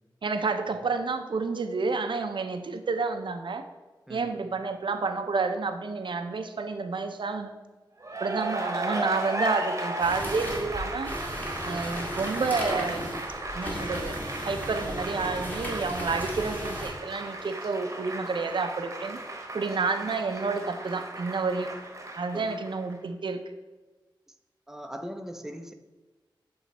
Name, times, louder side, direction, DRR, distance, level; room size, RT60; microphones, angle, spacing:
voice 1, 0.2-3.6 4.1-7.5 8.2-11.1 11.7-13.2 13.5-19.2 19.5-21.7 22.2-23.4, right 4 dB, 70° right, 7 dB, 0.5 m, -30 dB
voice 2, 4.1-4.4 22.3-22.6 24.7-25.7, equal, 5° right, 6 dB, 0.5 m, -40 dB
Cheering / Applause, 8.0-22.9, right 2 dB, 35° right, 0.9 m, -35 dB
sound 1, 10.0-16.9, equal, 20° left, 1.6 m, -36 dB
7.4 x 3.1 x 4.1 m, 1.2 s
wide cardioid pair, 70°, 9 cm